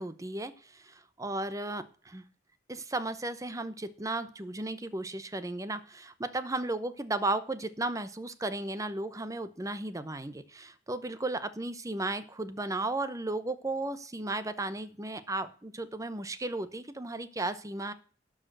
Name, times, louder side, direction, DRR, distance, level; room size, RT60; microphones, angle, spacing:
voice 1, 0.0-2.2 2.7-17.9, right 2 dB, 20° right, 12 dB, 0.8 m, -35 dB
12.0 x 4.9 x 7.8 m, 0.41 s
head